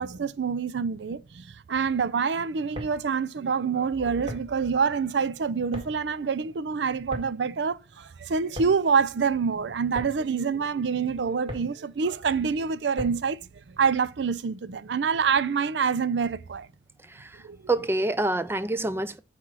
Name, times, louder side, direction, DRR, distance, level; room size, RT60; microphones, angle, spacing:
voice 1, 0.0-13.4 13.7-16.7 17.4-17.6, right 5 dB, 70° right, 0.5 m, -26 dB
Ball Bounce On Carpet, 2.5-13.4, left 1 dB, 30° right, 1.9 m, -42 dB
voice 2, 17.1-19.2, right 2 dB, 15° right, 0.4 m, -27 dB
5.9 x 4.4 x 6.2 m
head